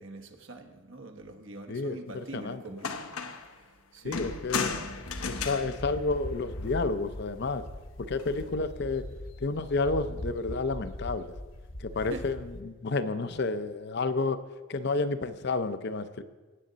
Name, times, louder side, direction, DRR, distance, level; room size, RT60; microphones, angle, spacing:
voice 1, 0.0-3.0 3.9-4.2 12.1-12.3, right 2 dB, 65° right, 5 dB, 1.1 m, -43 dB
voice 2, 1.7-2.6 4.0-4.7 5.2-7.6 8.0-9.1 9.4-11.3 11.8-14.4 14.7-16.2, left 3 dB, 50° left, 12 dB, 0.5 m, -30 dB
sound 1, 2.4-2.5 2.8-3.5 4.1-6.8 8.1-8.5, left 5 dB, 85° left, 0.9 m, -35 dB
sound 2, 4.0-12.6, equal, 65° left, 1.2 m, -41 dB
17.5 x 7.6 x 4.0 m, 1.2 s
head